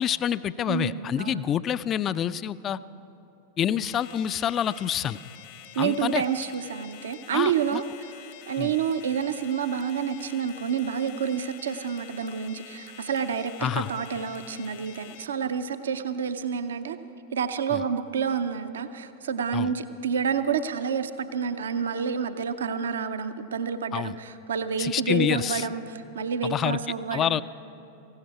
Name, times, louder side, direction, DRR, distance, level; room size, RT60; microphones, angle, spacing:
voice 1, 0.0-2.8 3.6-5.2 5.8-6.2 7.3-7.8 8.6-8.7 13.6-13.9 17.7-17.8 19.5-19.7 23.9-24.1 24.8-25.7 26.4-26.8 27.1-27.4, left 10 dB, 30° left, 16 dB, 0.3 m, -27 dB
voice 2, 0.7-1.4 5.8-7.8 8.5-17.0 17.3-27.4, right 7 dB, 65° right, 11 dB, 0.6 m, -29 dB
sound 1, 3.9-15.2, left 11 dB, 50° left, 0.8 m, -47 dB
17.5 x 16.0 x 4.7 m, 2.9 s
figure-of-eight pair, 90°, 0 cm